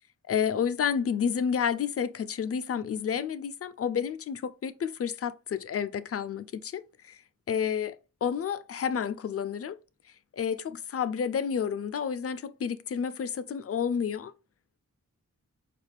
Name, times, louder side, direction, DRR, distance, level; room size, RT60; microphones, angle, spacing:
voice 1, 0.2-7.2 7.5-8.0 8.2-9.8 10.4-14.3, left 7 dB, 50° left, 0.4 m, -30 dB
4.8 x 2.4 x 3.3 m
wide cardioid pair, 70°, 31 cm